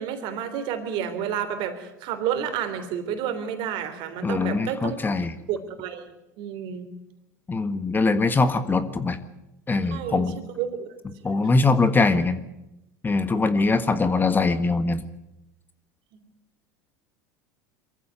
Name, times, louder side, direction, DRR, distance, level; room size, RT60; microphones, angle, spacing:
voice 1, 0.0-5.0 5.5-6.9 9.9-10.9 11.3-11.6 16.1-16.2, right 8 dB, 60° right, 9 dB, 3.4 m, -30 dB
voice 2, 4.2-5.3 7.5-9.2 9.7-10.3 11.2-12.4 13.0-15.0, left 3 dB, 20° left, 11 dB, 1.5 m, -22 dB
23.0 x 15.0 x 9.3 m, 0.90 s
hypercardioid pair, 80°, 9 cm